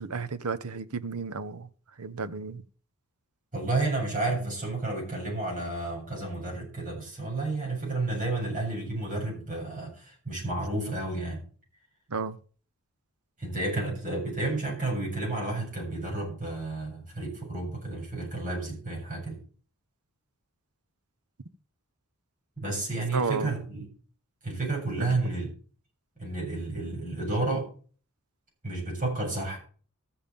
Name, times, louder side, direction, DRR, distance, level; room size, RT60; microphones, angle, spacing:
voice 1, 0.0-1.7 2.0-2.6 12.1-12.4 23.1-23.6 25.0-25.1, right 4 dB, 90° right, 0.9 m, -32 dB
voice 2, 3.5-11.4 13.4-19.4 22.6-23.9 24.4-25.5 26.2-27.7 28.6-29.6, right 2 dB, 35° right, 7.9 m, -31 dB
14.0 x 7.3 x 5.3 m
head